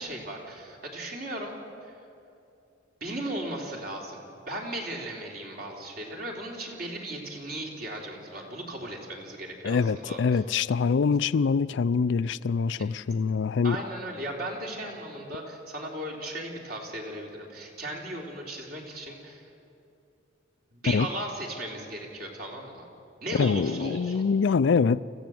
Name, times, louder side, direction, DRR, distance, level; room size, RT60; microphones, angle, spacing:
voice 1, 0.0-1.5 1.8-1.9 3.0-10.4 13.6-19.4 20.7-22.9 23.2-24.2, right 1 dB, 55° right, -1 dB, 3.5 m, -36 dB
voice 2, 9.6-13.8 20.9-21.1 23.4-25.0, left 5 dB, 65° left, 16 dB, 0.4 m, -24 dB
26.0 x 15.5 x 7.8 m, 2.6 s
head